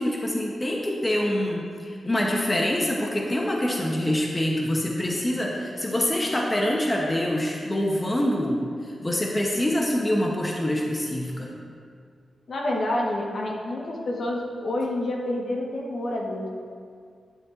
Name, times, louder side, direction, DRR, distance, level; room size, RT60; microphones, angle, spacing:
voice 1, 0.0-11.5, left 1 dB, 20° left, -1 dB, 0.9 m, -25 dB
voice 2, 12.5-16.5, left 1 dB, 60° left, -2 dB, 1.4 m, -28 dB
10.5 x 9.6 x 2.6 m, 2.2 s
wide cardioid pair, 110°, 0 cm